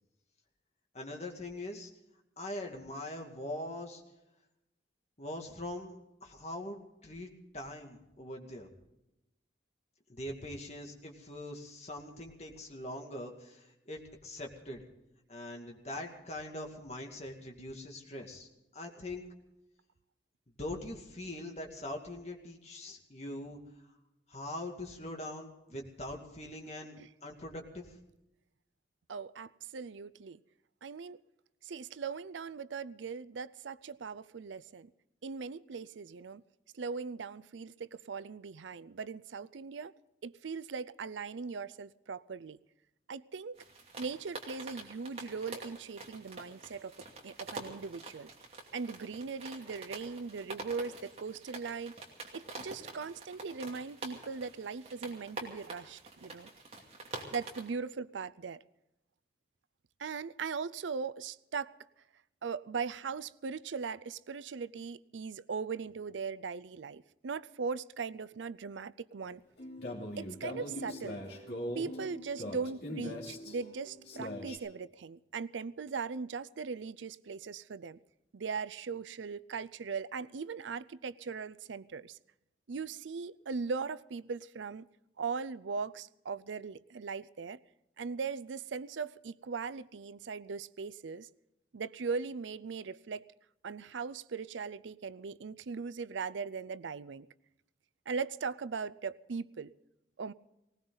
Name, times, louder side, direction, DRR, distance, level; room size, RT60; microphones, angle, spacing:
voice 1, 0.9-1.9 2.4-4.0 5.2-5.9 6.2-7.3 7.5-8.7 10.1-14.8 15.3-19.3 20.6-23.6 24.3-26.9 27.2-28.0, left 1 dB, 35° left, 2.3 m, -42 dB
voice 2, 29.1-30.4 30.8-31.2 31.6-34.9 35.2-36.4 36.7-39.9 40.2-42.6 43.1-43.6 44.0-47.0 47.2-48.3 48.7-51.9 52.3-56.5 57.3-58.6 60.0-61.7 62.4-69.4 70.2-71.2 71.7-78.0 78.3-82.2 82.7-84.9 85.2-87.6 88.0-91.3 91.7-93.2 93.6-97.3 98.1-99.7 100.2-100.3, right 5 dB, 90° right, 0.5 m, -39 dB
sound 1, 43.6-57.7, right 2 dB, 35° right, 2.6 m, -47 dB
sound 2, 69.6-74.6, left 1 dB, 65° left, 2.9 m, -41 dB
19.5 x 18.5 x 4.0 m
head